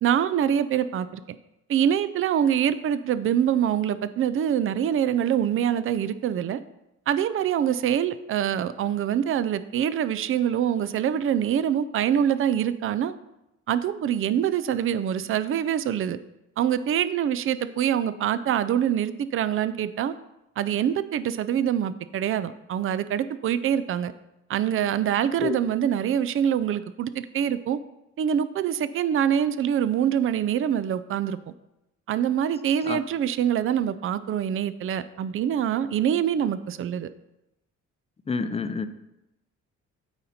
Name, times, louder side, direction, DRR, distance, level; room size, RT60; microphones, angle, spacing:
voice 1, 0.0-1.4 1.7-6.6 7.1-13.1 13.7-16.2 16.6-20.1 20.6-24.1 24.5-27.8 28.2-31.4 32.1-37.1, right 9 dB, 45° right, 14 dB, 0.4 m, -25 dB
voice 2, 38.3-38.9, left 5 dB, 20° left, 11 dB, 0.5 m, -28 dB
8.9 x 4.3 x 4.2 m, 0.90 s
cardioid pair, 90°, 30 cm